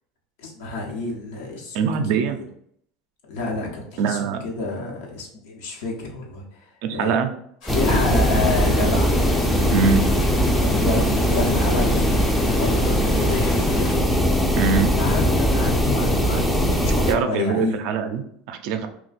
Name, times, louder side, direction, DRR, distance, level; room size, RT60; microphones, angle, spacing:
voice 1, 0.4-1.9 2.3-2.4 3.3-7.2 7.7-9.1 10.6-14.3 15.0-17.8, left 3 dB, 75° left, -1 dB, 0.9 m, -29 dB
voice 2, 1.7-2.4 4.0-4.4 6.8-7.3 9.7-10.0 14.6-14.9 17.1-18.9, right 5 dB, 65° right, 8 dB, 0.4 m, -22 dB
sound 1, 7.6-14.0, left 3 dB, 60° left, 1.2 m, -38 dB
sound 2, 7.7-17.1, equal, 5° left, 0.4 m, -20 dB
2.5 x 2.2 x 4.0 m, 0.68 s
supercardioid pair, 110°, 0 cm